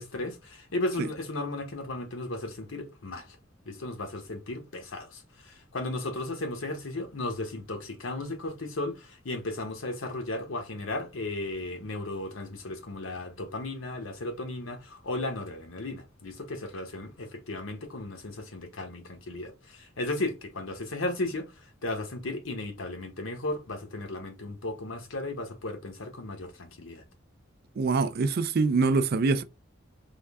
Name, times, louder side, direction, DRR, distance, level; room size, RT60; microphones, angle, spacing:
voice 1, 0.0-3.4 3.7-27.0, left 2 dB, 85° left, 1.0 m, -35 dB
voice 2, 27.8-29.4, right 4 dB, 50° right, 0.4 m, -24 dB
3.6 x 2.2 x 3.4 m
head